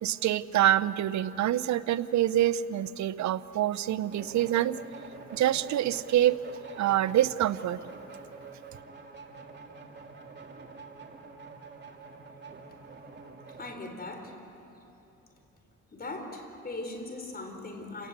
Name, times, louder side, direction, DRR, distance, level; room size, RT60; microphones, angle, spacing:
voice 1, 0.0-4.8 5.3-6.4 6.8-7.8, right 12 dB, 70° right, 15 dB, 0.8 m, -26 dB
sound 1, 4.1-13.7, right 4 dB, 35° right, 2.8 m, -46 dB
voice 2, 13.6-14.3 15.9-18.1, left 2 dB, 30° left, 5 dB, 4.3 m, -39 dB
28.5 x 18.5 x 8.2 m, 3.0 s
cardioid pair, 90°, 30 cm